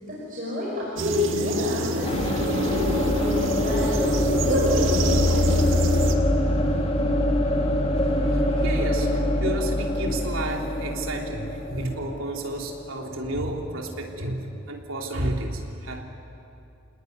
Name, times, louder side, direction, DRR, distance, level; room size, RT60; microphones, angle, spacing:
voice 1, 0.0-4.0 4.5-5.7, left 1 dB, 45° right, -5 dB, 5.4 m, -29 dB
sound 1, 1.0-6.1, equal, 70° right, 1.8 m, -26 dB
sound 2, 2.0-13.8, left 1 dB, 30° left, 2.4 m, -25 dB
voice 2, 8.2-16.0, right 1 dB, 85° right, 1 dB, 3.3 m, -31 dB
28.0 x 19.0 x 9.6 m, 2.7 s
head